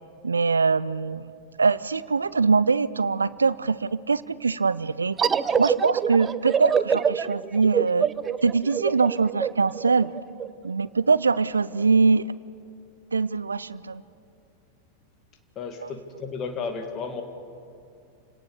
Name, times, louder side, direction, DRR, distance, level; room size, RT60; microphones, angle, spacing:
voice 1, 0.2-1.3 1.6-5.2 5.6-8.1 8.4-10.1 10.6-12.3 13.1-14.0 15.8-15.9, right 4 dB, 75° right, 18 dB, 0.5 m, -23 dB
sound 1, 5.2-10.5, right 7 dB, 20° right, 0.6 m, -25 dB
voice 2, 15.6-17.2, left 5 dB, 30° left, 5 dB, 2.0 m, -33 dB
28.5 x 18.0 x 6.9 m, 2.5 s
figure-of-eight pair, 90°, 0 cm